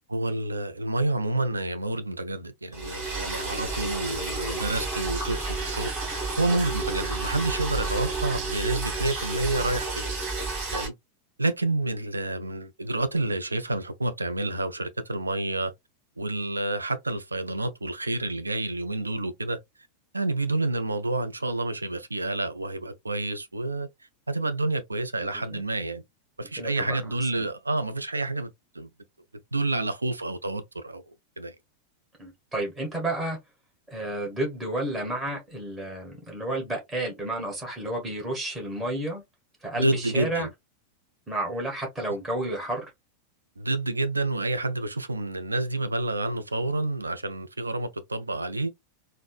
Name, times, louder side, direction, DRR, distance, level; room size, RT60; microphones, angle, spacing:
voice 1, 0.1-10.9 11.4-15.7 16.2-19.6 20.1-23.9 24.3-26.0 26.4-28.9 29.5-31.5 39.8-40.5 43.6-48.7, right 2 dB, 80° right, 0.4 m, -29 dB
Liquid, 2.7-10.9, right 3 dB, 40° right, 2.3 m, -31 dB
voice 2, 26.6-27.0 32.2-33.4 33.9-39.2 39.6-40.5 41.3-42.8, right 1 dB, 15° right, 1.5 m, -31 dB
4.1 x 2.1 x 2.3 m
figure-of-eight pair, 90°, 0 cm